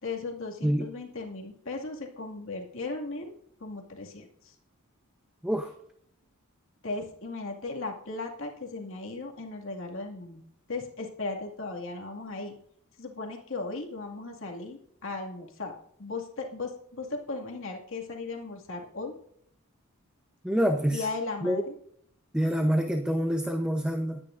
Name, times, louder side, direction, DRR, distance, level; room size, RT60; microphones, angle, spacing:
voice 1, 0.0-3.3 3.6-4.5 6.8-10.4 10.7-12.5 13.0-19.2 20.9-21.7, left 3 dB, 60° left, 1 dB, 2.2 m, -37 dB
voice 2, 20.4-21.1 21.4-21.6 22.3-24.2, equal, 5° right, 4 dB, 0.8 m, -26 dB
20.5 x 9.9 x 2.6 m, 0.67 s
head